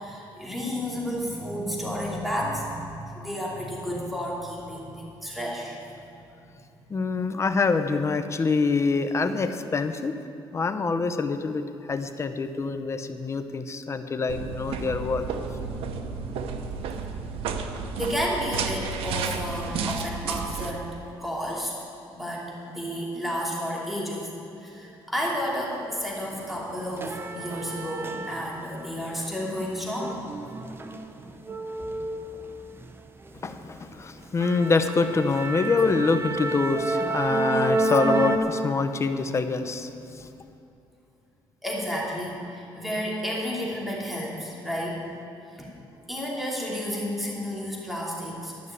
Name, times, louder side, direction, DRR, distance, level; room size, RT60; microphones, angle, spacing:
voice 1, 0.0-5.8 18.0-20.9 21.2-21.7 22.1-24.3 24.6-30.2 41.6-45.0 45.5-45.7 46.1-48.7, equal, ahead, -4 dB, 2.6 m, -31 dB
voice 2, 6.9-10.1 10.5-15.2 33.4-39.9 40.2-40.3, left 4 dB, 30° left, 8 dB, 0.7 m, -25 dB
sound 1, 14.3-20.7, right 5 dB, 90° right, 0.9 m, -32 dB
sound 2, 25.9-26.0 26.4-28.8 29.1-32.9 33.3-33.5 33.9-34.0 34.4-38.4, right 2 dB, 25° right, 0.8 m, -30 dB
12.5 x 6.3 x 9.7 m, 2.8 s
cardioid pair, 120°, 9 cm